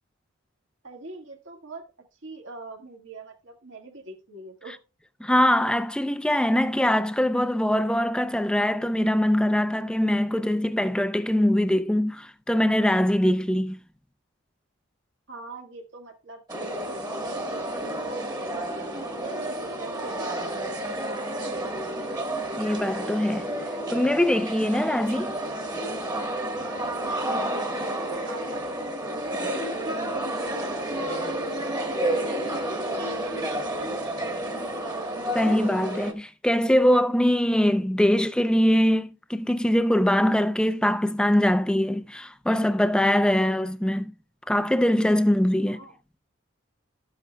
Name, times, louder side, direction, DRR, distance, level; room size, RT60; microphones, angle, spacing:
voice 1, 0.8-1.9 2.2-4.8 15.3-18.7 19.0-20.4 20.6-21.6 26.6-32.7 33.0-33.3 33.7-33.9 45.7-45.9, right 3 dB, 65° right, 1.7 m, -42 dB
voice 2, 5.2-13.8 22.6-23.5 23.9-25.3 35.3-44.1 44.5-45.8, left 1 dB, 5° left, 0.4 m, -22 dB
sound 1, 16.5-36.1, right 1 dB, 20° right, 1.3 m, -30 dB
12.5 x 8.4 x 2.2 m
head